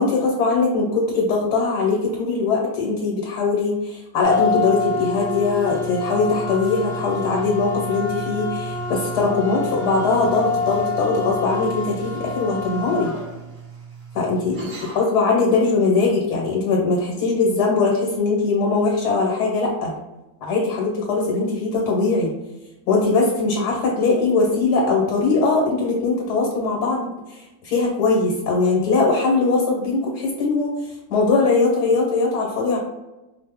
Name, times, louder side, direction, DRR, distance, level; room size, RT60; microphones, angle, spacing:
voice 1, 0.0-13.1 14.1-14.6 14.9-19.9 20.4-22.3 22.9-30.7 31.1-32.8, left 3 dB, 85° left, -2 dB, 1.4 m, -21 dB
sound 1, 4.2-15.2, left 3 dB, 55° right, 0.5 m, -28 dB
4.7 x 2.0 x 3.4 m, 1.0 s
omnidirectional pair, 1.7 m